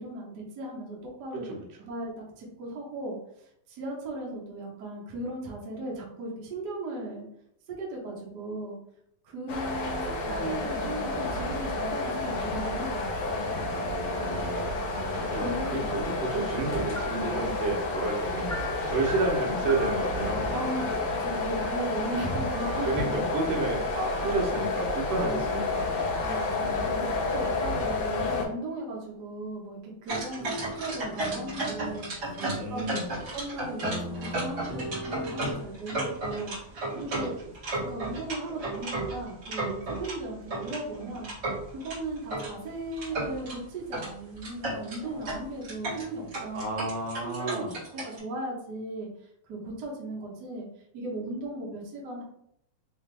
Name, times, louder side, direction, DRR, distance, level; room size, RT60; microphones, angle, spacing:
voice 1, 0.0-1.5 1.8-2.1 2.4-3.2 3.7-7.3 7.7-8.8 9.2-13.5 15.4-16.1 20.5-23.5 25.1-25.4 26.2-33.0 33.3-37.4 37.8-41.3 41.7-46.8 47.2-47.6 47.9-49.1 49.5-50.7 50.9-52.2, right 2 dB, 55° right, -3 dB, 1.1 m, -37 dB
sound 1, 9.5-28.5, left 2 dB, 65° left, 1.4 m, -30 dB
voice 2, 13.7-20.8 22.8-26.2 26.9-27.3 32.4-33.1 36.9-37.0 46.5-47.8, right 2 dB, 80° right, -1 dB, 2.6 m, -31 dB
sound 2, 16.5-20.8 22.0-23.7 24.1-24.7 25.1-25.5 26.1-26.6 30.4-33.5 33.8-35.5, left 1 dB, 40° left, 0.8 m, -42 dB
sound 3, 30.1-40.2 40.5-42.5 42.9-43.6 43.9-44.1 44.3-48.2, right 2 dB, 40° right, 2.2 m, -33 dB
5.5 x 2.9 x 3.4 m, 0.72 s
omnidirectional pair, 3.6 m